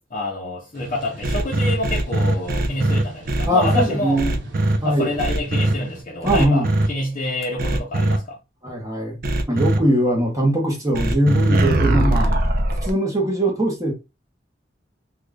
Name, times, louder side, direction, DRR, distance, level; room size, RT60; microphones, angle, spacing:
voice 1, 0.1-4.2 4.8-8.4, left 2 dB, 40° left, 0.7 m, -27 dB
sound 1, 0.7-6.0, equal, 80° right, 0.8 m, -39 dB
sound 2, 1.2-3.8 4.2-4.8 5.2-5.7 6.2-6.9 7.6-8.2 9.2-9.8 10.9-12.9, right 1 dB, 50° right, 0.5 m, -20 dB
voice 2, 3.5-4.4 4.8-5.1 6.2-6.7 8.6-9.2 9.5-12.3 12.8-13.9, right 1 dB, 20° right, 0.9 m, -21 dB
2.6 x 2.4 x 3.3 m
head